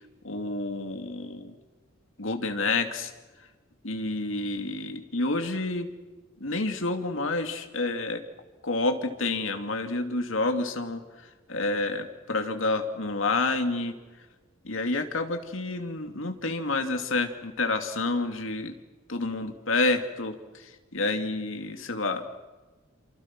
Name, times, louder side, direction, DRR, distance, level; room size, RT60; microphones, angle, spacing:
voice 1, 0.2-1.5 2.2-3.1 3.8-5.9 6.4-8.2 8.6-13.9 14.6-18.7 19.1-22.5, left 2 dB, 70° left, 5 dB, 2.8 m, -29 dB
29.5 x 26.5 x 6.2 m, 1.2 s
head